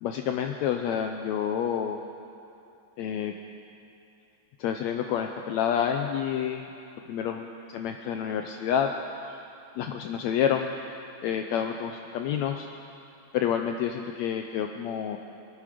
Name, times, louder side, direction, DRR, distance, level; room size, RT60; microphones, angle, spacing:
voice 1, 0.0-2.0 3.0-3.3 4.6-6.7 7.1-8.9 9.3-9.4 9.8-10.7 11.2-12.7 13.3-15.2, left 8 dB, 80° left, 4 dB, 1.6 m, -28 dB
25.0 x 9.7 x 5.0 m, 2.7 s
omnidirectional pair, 3.7 m